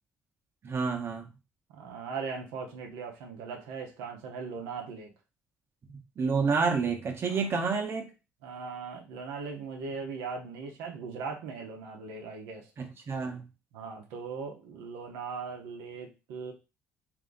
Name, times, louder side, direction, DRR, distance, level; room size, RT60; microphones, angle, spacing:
voice 1, 0.6-1.3 5.9-8.1 12.8-13.5, right 5 dB, 50° right, 1.1 m, -29 dB
voice 2, 1.7-5.1 7.3-7.4 8.4-12.7 13.7-16.5, right 5 dB, 85° right, 0.9 m, -39 dB
3.3 x 2.8 x 3.9 m
supercardioid pair, 60°, 5 cm